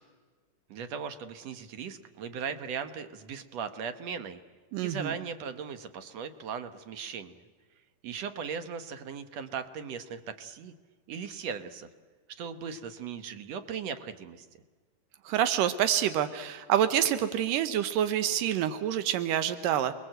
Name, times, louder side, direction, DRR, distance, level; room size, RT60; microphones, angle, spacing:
voice 1, 0.7-4.4 4.8-7.4 8.0-10.7 11.1-11.9 12.4-14.5, right 6 dB, 60° right, 10 dB, 2.1 m, -38 dB
voice 2, 4.7-5.1 15.3-19.9, right 10 dB, 90° right, 11 dB, 2.6 m, -27 dB
29.5 x 21.0 x 7.9 m, 1.4 s
omnidirectional pair, 3.7 m